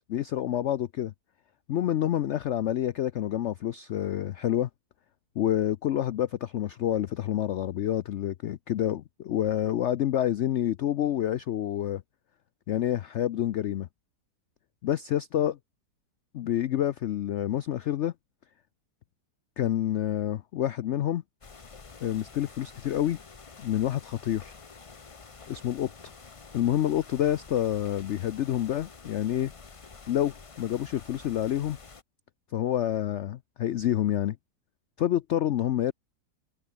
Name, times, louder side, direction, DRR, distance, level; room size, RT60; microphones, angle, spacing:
voice 1, 0.1-1.1 1.7-4.7 5.4-12.0 12.7-13.9 14.8-15.5 16.3-18.1 19.6-21.2 22.0-23.2 23.6-24.5 25.5-25.9 26.5-29.5 30.1-31.8 32.5-34.4 35.0-35.9, left 11 dB, 75° left, 0.6 m, -28 dB
sound 1, 21.4-32.0, left 4 dB, 30° left, 0.6 m, -49 dB
open air
omnidirectional pair, 1.8 m